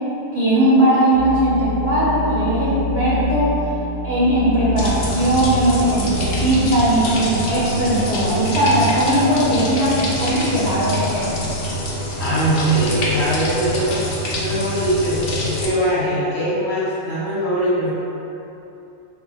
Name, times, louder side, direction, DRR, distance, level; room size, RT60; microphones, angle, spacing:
voice 1, 0.3-3.5 4.0-11.2, right 1 dB, 35° left, -11 dB, 1.7 m, -18 dB
sound 1, 1.1-7.0, left 1 dB, 75° right, 0.9 m, -27 dB
sound 2, 4.8-15.7, equal, 55° left, 0.8 m, -25 dB
voice 2, 12.2-14.0 14.4-17.9, right 1 dB, 80° left, -9 dB, 1.7 m, -21 dB
5.2 x 2.0 x 4.3 m, 2.9 s
omnidirectional pair, 1.3 m